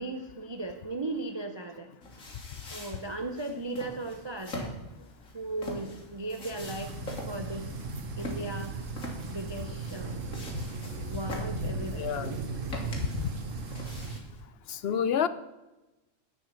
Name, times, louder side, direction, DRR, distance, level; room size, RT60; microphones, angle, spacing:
voice 1, 0.0-1.9 2.7-4.7 5.3-7.0 7.3-7.8 8.2-8.7 9.3-10.2 11.1-12.1, right 2 dB, 30° right, 6 dB, 0.5 m, -37 dB
sound 1, 2.0-14.4, left 1 dB, 85° left, 2.4 m, -44 dB
sound 2, 6.6-14.2, right 4 dB, 75° right, 1.5 m, -37 dB
voice 2, 11.6-12.3 13.0-13.3 14.7-15.3, left 8 dB, 65° left, 14 dB, 0.7 m, -30 dB
10.5 x 5.6 x 7.6 m, 1.0 s
omnidirectional pair, 1.4 m